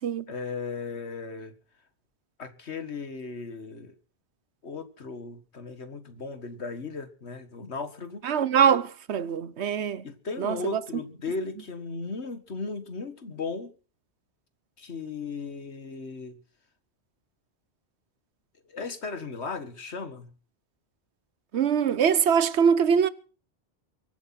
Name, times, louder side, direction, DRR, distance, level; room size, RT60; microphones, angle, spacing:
voice 1, 0.3-1.5 2.4-3.9 4.6-8.3 10.0-13.7 14.8-16.4 18.7-20.3, left 4 dB, 85° left, 2.0 m, -36 dB
voice 2, 8.2-10.0 10.4-10.6 21.5-23.1, right 7 dB, 85° right, 1.2 m, -23 dB
23.5 x 8.2 x 5.9 m
omnidirectional pair, 1.1 m